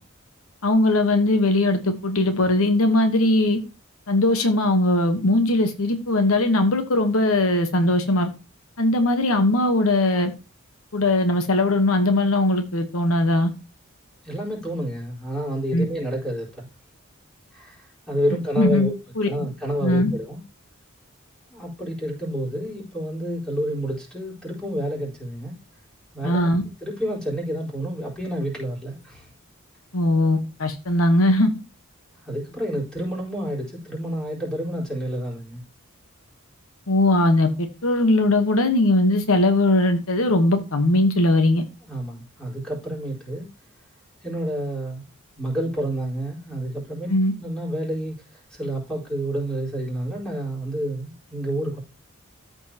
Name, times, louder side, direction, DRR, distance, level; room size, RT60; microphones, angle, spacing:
voice 1, 0.6-3.6 4.1-8.3 8.8-10.3 10.9-13.5 15.7-15.9 18.6-18.9 19.2-19.3 19.8-20.1 26.2-26.6 29.9-31.5 36.9-41.6 47.1-47.3, left 2 dB, 80° left, 1.1 m, -20 dB
voice 2, 14.2-16.7 17.5-18.9 19.2-20.4 21.5-25.5 26.1-26.4 26.8-29.3 32.2-35.6 41.8-43.5 44.2-45.1 45.3-51.8, equal, 5° left, 4.3 m, -29 dB
13.5 x 5.2 x 2.9 m
head